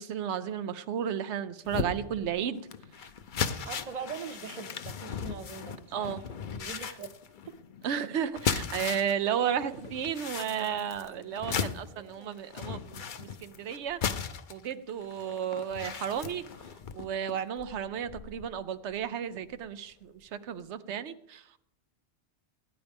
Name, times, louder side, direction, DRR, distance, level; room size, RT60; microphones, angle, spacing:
voice 1, 0.0-2.6 3.0-3.1 3.5-3.7 5.9-6.2 6.8-6.9 7.8-16.4 16.9-21.5, right 8 dB, 85° right, 11 dB, 1.0 m, -33 dB
sound 1, 1.6-9.2 9.5-18.5 18.9-19.1 19.5-19.6, left 6 dB, 50° left, 0.8 m, -37 dB
voice 2, 3.6-6.2 6.5-7.1 7.5-7.6 11.9-12.3, right 6 dB, 40° right, 9 dB, 0.9 m, -42 dB
17.5 x 10.0 x 3.5 m, 0.73 s
omnidirectional pair, 1.1 m